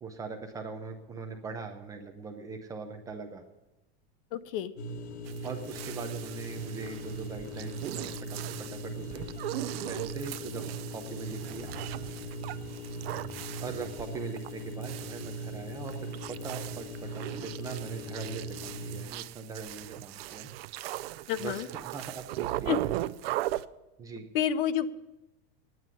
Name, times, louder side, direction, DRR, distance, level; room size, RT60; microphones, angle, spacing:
voice 1, 0.0-3.4 5.4-9.3 9.9-11.7 13.6-20.5 21.4-22.9 24.0-24.3, right 4 dB, 10° right, 4 dB, 0.4 m, -41 dB
voice 2, 4.3-4.7 21.3-21.7 22.7-22.8 24.3-24.9, left 10 dB, 55° left, 13 dB, 0.8 m, -29 dB
sound 1, 4.8-19.0, right 1 dB, 75° left, 1.5 m, -39 dB
sound 2, 5.3-23.6, right 15 dB, 65° right, 0.5 m, -39 dB
9.4 x 9.2 x 9.8 m, 0.98 s
supercardioid pair, 180°, 32 cm